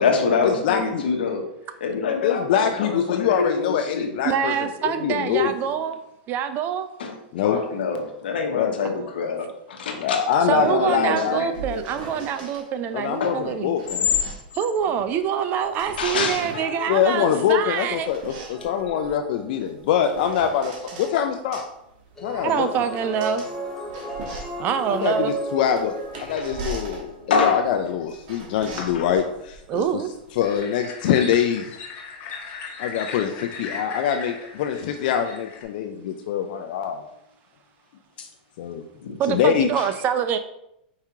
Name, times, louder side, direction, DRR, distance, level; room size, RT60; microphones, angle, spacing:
voice 1, 0.0-1.4 1.8-4.1 7.0-11.8 13.2-13.4 16.0-17.0 26.2-26.5 27.3-27.6 28.8-29.1 38.2-38.3 39.0-39.2 39.8-39.9, left 5 dB, 80° left, 3 dB, 0.8 m, -26 dB
voice 2, 0.6-1.0 2.2-5.8 7.3-7.6 8.5-8.7 10.0-11.4 12.9-14.1 16.9-21.6 22.2-22.7 25.0-26.0 26.2-30.0 30.3-31.7 32.8-37.0 38.6-38.8 39.3-39.7, left 9 dB, 65° left, 5 dB, 0.3 m, -24 dB
voice 3, 4.2-6.0 6.3-6.9 8.8-9.1 10.5-13.8 14.5-18.1 22.3-23.4 24.6-25.4 29.7-30.1 39.2-40.4, right 8 dB, 35° right, 10 dB, 0.4 m, -25 dB
sound 1, 11.3-12.6 13.5-15.3 15.6-16.7 17.5-21.1 21.5-30.6, right 3 dB, 55° right, 1.2 m, -39 dB
sound 2, 18.5-19.9 22.2-27.4, right 2 dB, 10° left, 0.7 m, -35 dB
sound 3, 30.4-35.6, left 4 dB, 40° left, 1.0 m, -38 dB
4.8 x 2.8 x 3.5 m, 0.81 s
hypercardioid pair, 120°, 5 cm